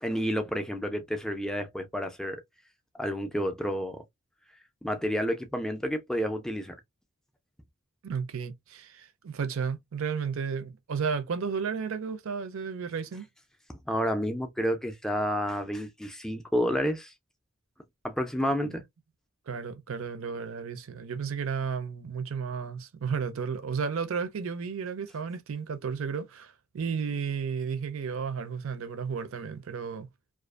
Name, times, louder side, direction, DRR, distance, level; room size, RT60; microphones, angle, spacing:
voice 1, 0.0-2.4 3.0-4.0 4.8-6.8 13.9-17.1 18.0-18.8, equal, ahead, 0.4 m, -30 dB
voice 2, 8.0-13.3 18.6-18.8 19.5-30.1, right 6 dB, 60° right, 0.4 m, -33 dB
2.5 x 2.3 x 2.3 m
head